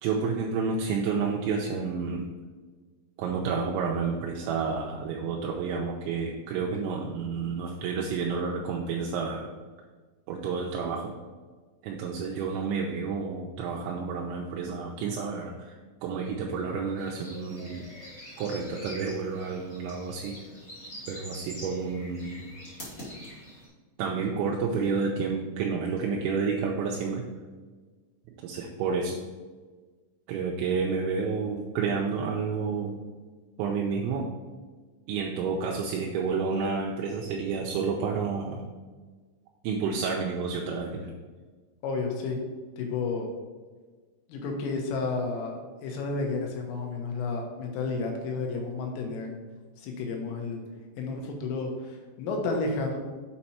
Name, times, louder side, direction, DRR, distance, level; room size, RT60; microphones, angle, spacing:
voice 1, 0.0-2.2 3.2-9.5 10.3-11.1 11.8-15.8 16.0-17.9 18.4-20.3 21.1-22.5 24.0-27.2 28.4-29.2 30.3-33.0 33.6-34.3 35.1-38.6 39.6-41.1, right 5 dB, 80° right, 0 dB, 2.8 m, -30 dB
sound 1, 17.0-23.7, equal, 55° left, 0.9 m, -45 dB
voice 2, 41.8-42.4 42.8-43.3 44.3-45.6 45.8-49.3 49.8-50.6 51.0-53.0, left 3 dB, 80° left, 2 dB, 3.7 m, -31 dB
7.9 x 4.3 x 4.3 m, 1.4 s
omnidirectional pair, 5.8 m